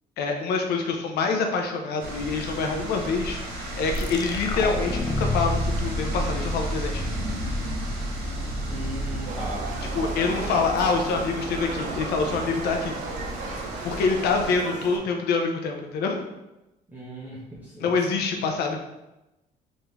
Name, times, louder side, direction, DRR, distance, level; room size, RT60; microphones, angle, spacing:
voice 1, 0.2-7.0 9.9-12.9 13.8-16.2 17.8-18.8, left 4 dB, 75° left, 3 dB, 0.7 m, -26 dB
sound 1, 2.0-14.6, right 1 dB, 70° right, 1.2 m, -34 dB
sound 2, 3.9-11.2, left 1 dB, 25° left, 0.3 m, -31 dB
voice 2, 8.7-9.7 16.9-18.0, right 1 dB, 10° right, -7 dB, 0.7 m, -37 dB
Livestock farm animals working animals, 9.3-15.0, right 3 dB, 50° right, 0.7 m, -35 dB
3.5 x 2.7 x 3.1 m, 0.95 s
cardioid pair, 110°, 17 cm